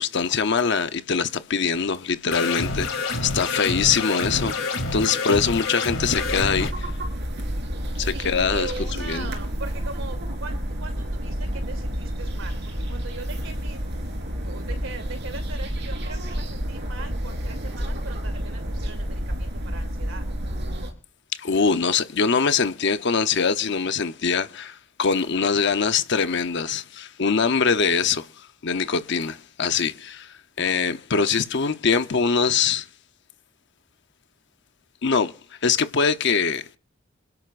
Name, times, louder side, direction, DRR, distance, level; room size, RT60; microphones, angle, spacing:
voice 1, 0.0-4.5 4.9-6.9 8.0-8.7 9.0-9.3 21.4-28.3 28.6-30.3 30.6-32.9 35.0-35.3 35.6-36.8, left 5 dB, 60° left, 0.8 m, -23 dB
sound 1, 2.3-6.7, left 3 dB, 90° left, 2.3 m, -27 dB
voice 2, 3.4-3.9 8.0-13.8 14.4-20.3, right 3 dB, 85° right, 2.9 m, -40 dB
sound 2, 6.1-20.9, equal, 60° right, 3.9 m, -30 dB
27.0 x 11.0 x 2.5 m
head